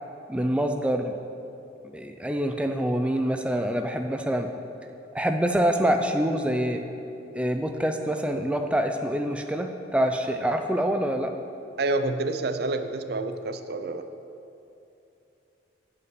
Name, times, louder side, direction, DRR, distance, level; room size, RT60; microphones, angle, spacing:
voice 1, 0.3-1.1 1.9-4.5 5.1-6.8 7.3-11.3, equal, 5° right, 5 dB, 0.4 m, -26 dB
voice 2, 11.8-14.1, right 2 dB, 60° right, 9 dB, 0.5 m, -28 dB
8.0 x 5.7 x 7.6 m, 2.9 s
head